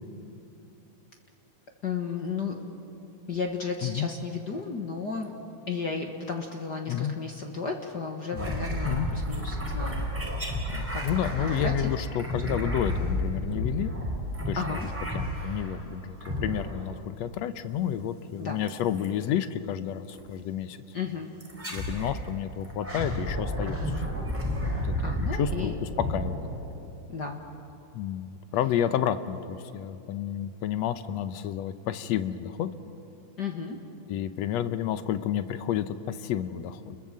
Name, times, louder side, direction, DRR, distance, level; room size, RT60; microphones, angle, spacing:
voice 1, 1.8-2.6 3.3-5.3 5.7-10.1 10.7-11.0 11.4-11.9 12.5-12.7 14.5-14.9 18.4-18.6 20.9-21.3 25.0-25.8 27.1-27.4 33.4-33.8, left 5 dB, 45° left, 3 dB, 1.6 m, -34 dB
sound 1, 8.4-15.8 16.2-17.0 18.7-19.1 20.1-20.3 21.4-22.2 22.6-27.0, equal, 5° right, 4.3 m, -31 dB
voice 2, 11.0-13.9 14.5-20.8 21.7-24.3 24.7-26.5 27.9-32.7 34.1-37.0, left 10 dB, 70° left, 11 dB, 1.9 m, -30 dB
30.0 x 21.5 x 7.6 m, 2.8 s
omnidirectional pair, 3.4 m